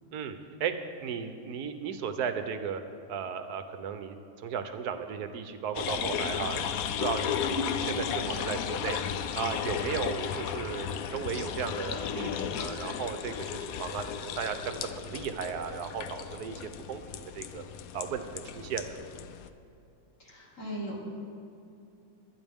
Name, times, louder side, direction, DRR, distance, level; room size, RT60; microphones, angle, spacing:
voice 1, 0.1-0.7 1.0-2.8 3.1-6.7 7.0-7.3 7.8-9.0 9.3-17.6 17.9-18.2 18.5-19.0, right 7 dB, 65° right, 9 dB, 1.1 m, -35 dB
sound 1, 5.7-19.5, left 8 dB, 85° left, 0.7 m, -34 dB
voice 2, 20.2-21.0, left 1 dB, 40° left, -4 dB, 2.5 m, -36 dB
23.0 x 9.6 x 3.6 m, 2.6 s
omnidirectional pair, 2.1 m